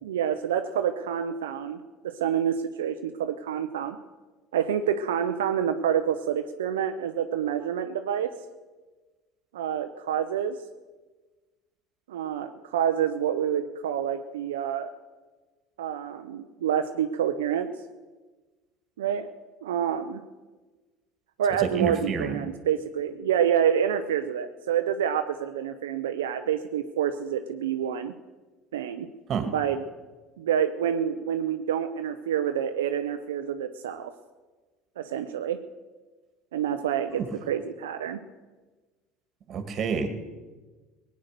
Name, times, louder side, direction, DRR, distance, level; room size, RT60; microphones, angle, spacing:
voice 1, 0.0-4.0 4.5-8.3 9.5-10.6 12.1-14.9 15.8-17.7 19.0-19.3 19.6-20.2 21.4-28.1 28.7-29.1 29.4-29.8 30.4-34.1 35.0-35.6 36.5-38.2, right 9 dB, 90° right, 7 dB, 0.6 m, -27 dB
voice 2, 21.6-22.4 29.3-29.5 37.1-37.3 39.5-40.1, right 6 dB, 45° right, 9 dB, 1.9 m, -28 dB
17.5 x 9.4 x 6.7 m, 1.3 s
hypercardioid pair, 85°, 0 cm